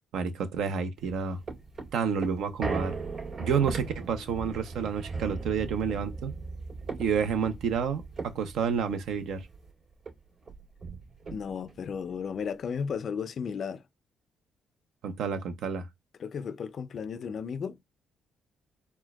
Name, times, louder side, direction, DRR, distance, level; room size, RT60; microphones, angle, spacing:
voice 1, 0.1-1.4 1.9-3.0 3.4-6.3 7.0-9.5 15.0-15.9, right 6 dB, 80° right, 0.5 m, -29 dB
sound 1, 1.0-9.7 10.1-10.2 10.4-11.8 12.3-12.4, right 4 dB, 60° right, 2.3 m, -38 dB
voice 2, 11.3-13.8 16.2-17.8, left 6 dB, 55° left, 0.3 m, -34 dB
4.4 x 2.1 x 2.2 m
cardioid pair, 90°, 0 cm